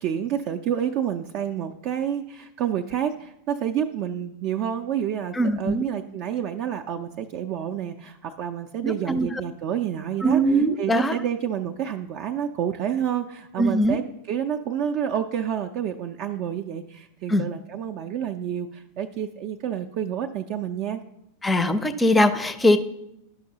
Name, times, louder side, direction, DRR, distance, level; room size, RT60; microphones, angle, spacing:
voice 1, 0.0-14.0 14.3-21.0, right 9 dB, 40° right, 4 dB, 0.4 m, -29 dB
voice 2, 5.3-5.9 8.8-9.3 10.2-11.2 13.6-14.0 17.3-17.4 21.4-22.8, equal, 10° left, 12 dB, 0.5 m, -21 dB
12.0 x 5.8 x 2.8 m, 0.82 s
figure-of-eight pair, 90°, 0 cm